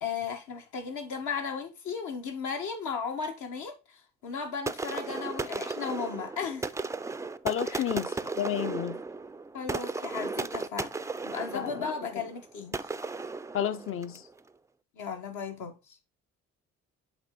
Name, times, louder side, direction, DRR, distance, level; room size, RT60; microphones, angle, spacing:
voice 1, 0.0-6.7 7.6-7.8 9.5-10.9 11.2-12.8 13.6-13.8 14.9-16.0, left 5 dB, 75° left, 1.5 m, -36 dB
sound 1, 4.7-14.3, right 3 dB, 10° right, 0.3 m, -35 dB
voice 2, 7.4-8.1 8.4-9.0 11.5-11.9 13.5-14.2, left 10 dB, 45° left, 0.5 m, -31 dB
8.1 x 3.4 x 3.8 m
cardioid pair, 90°, 30 cm